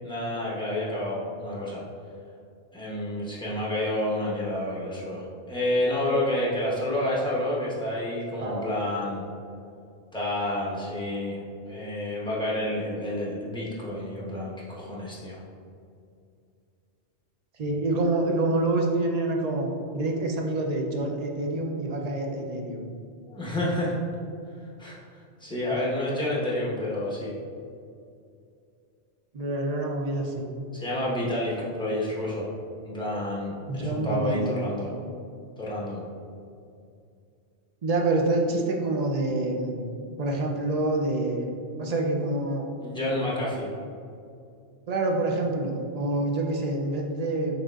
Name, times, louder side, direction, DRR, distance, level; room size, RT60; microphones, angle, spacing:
voice 1, 0.0-1.8 2.7-9.2 10.1-11.4 11.7-15.4 23.3-24.0 24.8-25.0 25.4-27.3 30.7-32.5 32.8-34.9 35.6-36.0 42.8-43.7, left 1 dB, 5° left, -6 dB, 0.9 m, -29 dB
voice 2, 8.4-8.8 17.6-22.9 25.7-25.8 29.3-30.5 33.7-34.5 37.8-41.5 41.8-42.7 44.9-47.6, right 2 dB, 50° right, 1 dB, 0.5 m, -27 dB
6.3 x 3.4 x 2.4 m, 2.4 s
omnidirectional pair, 1.2 m